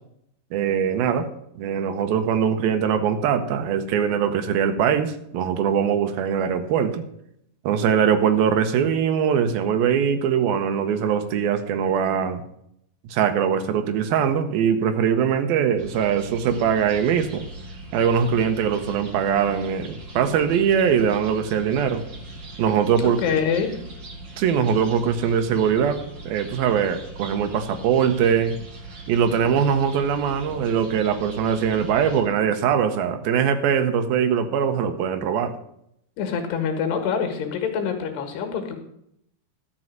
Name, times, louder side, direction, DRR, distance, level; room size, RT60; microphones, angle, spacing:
voice 1, 0.5-1.3 1.6-7.0 7.6-12.4 13.1-17.5 17.9-22.0 22.6-23.2 24.4-26.0 26.3-28.6 29.1-35.6, right 7 dB, 75° right, 8 dB, 2.5 m, -22 dB
sound 1, 15.8-32.2, right 2 dB, 40° right, 1.7 m, -40 dB
voice 2, 23.0-23.7 36.2-38.8, left 6 dB, 85° left, 5 dB, 3.7 m, -25 dB
12.0 x 6.3 x 7.4 m, 0.74 s
omnidirectional pair, 4.7 m